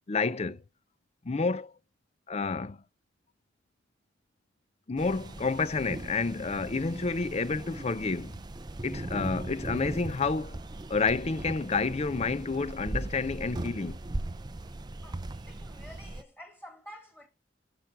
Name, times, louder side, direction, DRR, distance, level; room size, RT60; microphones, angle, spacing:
voice 1, 0.1-0.6 1.2-1.7 2.3-2.8 4.9-8.3 8.8-10.6 10.9-14.0, left 4 dB, 35° left, 0.5 m, -29 dB
sound 1, 5.0-16.2, right 2 dB, 20° right, 0.5 m, -39 dB
voice 2, 15.0-17.3, equal, 10° left, 2.1 m, -49 dB
11.0 x 5.9 x 8.0 m
head